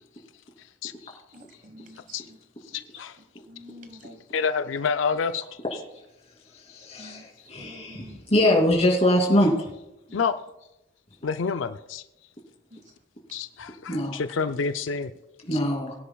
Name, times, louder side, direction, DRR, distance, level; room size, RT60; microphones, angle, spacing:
voice 1, 1.3-2.4 3.5-4.2 7.0-7.2 7.6-8.2 10.1-10.2 12.7-12.8 13.3-13.4, equal, 40° right, 6 dB, 1.3 m, -47 dB
voice 2, 2.7-3.2 4.3-5.4 10.1-10.4 11.2-12.0 13.3-15.1 15.5-15.6, left 5 dB, 75° left, 10 dB, 0.5 m, -28 dB
voice 3, 6.9-9.5 13.9-14.2 15.5-15.9, left 1 dB, 35° left, 0 dB, 2.8 m, -22 dB
21.0 x 10.0 x 2.3 m, 0.88 s
head